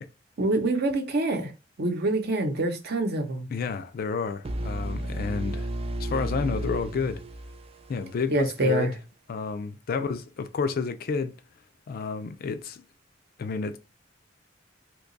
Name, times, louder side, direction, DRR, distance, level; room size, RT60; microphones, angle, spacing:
voice 1, 0.4-1.5 1.8-3.5 8.3-8.9, right 2 dB, 55° right, 0.7 m, -26 dB
voice 2, 3.5-5.7 6.0-7.2 7.9-8.9 9.3-11.3 11.9-12.8 13.4-13.8, left 5 dB, 50° left, 0.4 m, -30 dB
sound 1, 4.4-8.3, right 1 dB, 30° right, 0.3 m, -33 dB
2.8 x 2.3 x 3.8 m
head